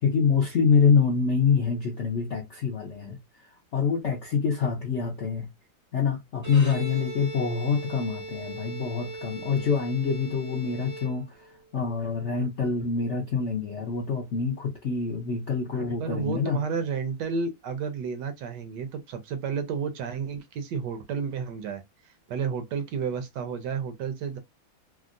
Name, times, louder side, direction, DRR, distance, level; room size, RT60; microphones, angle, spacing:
voice 1, 0.0-3.2 3.7-5.5 5.9-16.6, left 5 dB, 60° left, 0.7 m, -26 dB
Bowed string instrument, 6.4-11.6, right 2 dB, 15° right, 0.6 m, -39 dB
voice 2, 16.0-21.8 22.3-24.4, right 6 dB, 70° right, 1.1 m, -31 dB
3.5 x 2.1 x 2.4 m
omnidirectional pair, 2.1 m